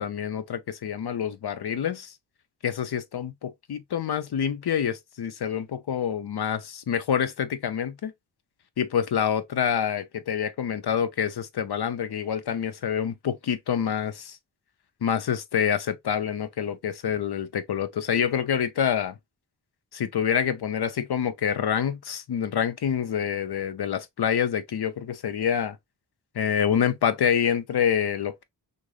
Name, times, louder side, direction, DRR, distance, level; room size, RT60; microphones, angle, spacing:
voice 1, 0.0-2.1 2.6-8.1 8.8-14.4 15.0-19.1 19.9-25.8 26.4-28.4, left 8 dB, 60° left, 0.6 m, -27 dB
3.1 x 2.6 x 2.3 m
wide cardioid pair, 75°, 43 cm